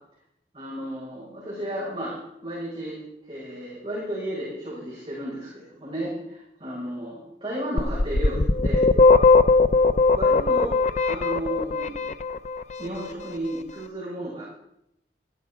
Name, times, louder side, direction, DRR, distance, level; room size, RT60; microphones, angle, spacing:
voice 1, 0.5-8.8 10.1-10.7 11.1-12.0 12.8-14.4, right 1 dB, 30° right, -8 dB, 5.8 m, -33 dB
sound 1, 7.8-12.6, left 3 dB, 40° left, 0.5 m, -18 dB
14.5 x 13.0 x 4.8 m, 0.80 s
head